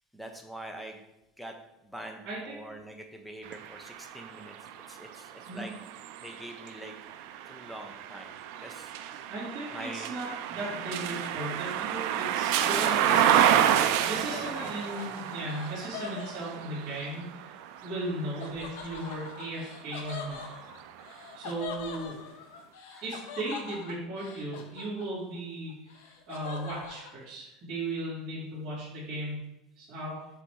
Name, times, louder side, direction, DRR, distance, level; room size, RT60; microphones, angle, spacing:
voice 1, 0.1-1.1 1.4-1.5 1.8-4.6 4.9-5.7 6.2-6.9 7.4-8.4 8.6-9.3 9.7-10.1 14.0-14.7 15.1-15.2 22.9-23.1, right 1 dB, ahead, 4 dB, 0.6 m, -44 dB
voice 2, 2.2-2.6 5.4-5.7 9.3-20.4 21.3-22.2 23.0-29.4 29.8-30.2, right 1 dB, 35° right, -12 dB, 2.3 m, -37 dB
sound 1, 3.4-19.4 19.9-21.2, right 10 dB, 60° right, 0.4 m, -30 dB
Laughter, 10.9-17.0 18.4-25.4 25.7-27.1, left 6 dB, 90° left, 0.9 m, -43 dB
6.9 x 3.4 x 4.6 m, 0.90 s
cardioid pair, 170°, 0 cm